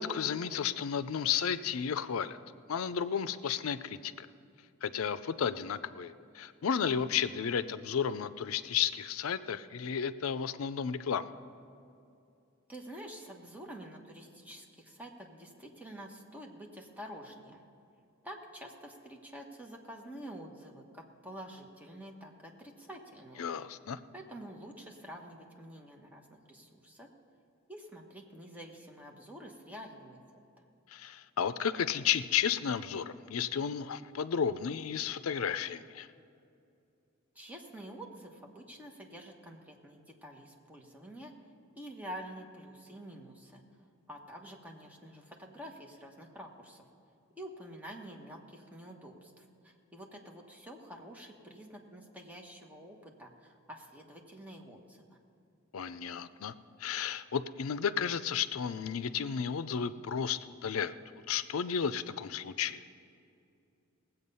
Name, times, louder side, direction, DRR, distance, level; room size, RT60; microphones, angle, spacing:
voice 1, 0.0-2.4 2.7-4.3 4.8-11.3 23.4-24.0 30.9-36.1 55.7-56.5 56.8-60.9 61.3-62.8, left 7 dB, 80° left, 14 dB, 0.5 m, -33 dB
voice 2, 12.7-17.6 18.2-23.5 24.1-27.1 27.7-30.4 37.3-41.3 41.7-43.6 44.1-46.8 47.4-55.2, equal, 10° right, 1 dB, 1.2 m, -48 dB
19.0 x 8.0 x 5.5 m, 2.6 s
head